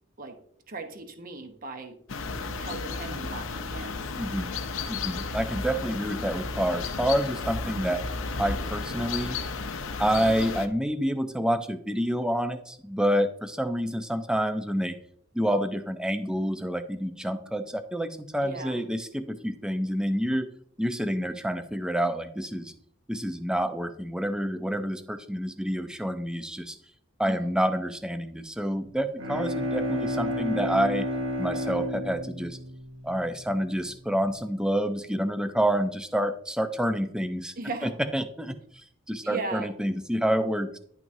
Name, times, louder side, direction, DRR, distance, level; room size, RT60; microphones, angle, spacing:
voice 1, 0.7-2.0 2.6-4.1 10.0-10.3 18.4-18.8 27.2-27.5 37.6-37.9 39.2-39.7, right 3 dB, 45° right, 6 dB, 1.0 m, -37 dB
sound 1, 2.1-10.7, left 4 dB, 80° left, 0.7 m, -33 dB
voice 2, 4.2-4.5 4.9-8.0 8.4-9.4 10.0-15.0 15.3-20.5 20.8-22.7 23.1-26.8 27.2-31.1 31.4-32.6 33.0-37.5 37.8-40.8, equal, 5° right, 9 dB, 0.5 m, -28 dB
Bowed string instrument, 29.2-33.7, left 1 dB, 70° right, 1.3 m, -31 dB
10.5 x 6.0 x 2.7 m, 0.64 s
head